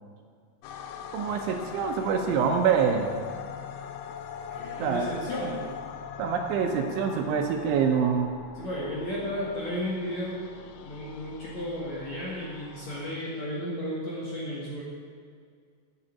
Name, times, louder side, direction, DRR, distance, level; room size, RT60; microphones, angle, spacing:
sound 1, 0.6-13.2, left 8 dB, 80° left, 3.2 m, -42 dB
voice 1, 1.1-3.1 4.8-5.1 6.2-8.3, right 6 dB, 80° right, 3 dB, 3.0 m, -25 dB
voice 2, 4.5-5.6 8.5-10.4 10.8-14.8, equal, 50° left, -6 dB, 2.3 m, -33 dB
9.4 x 9.0 x 8.3 m, 2.1 s
omnidirectional pair, 5.8 m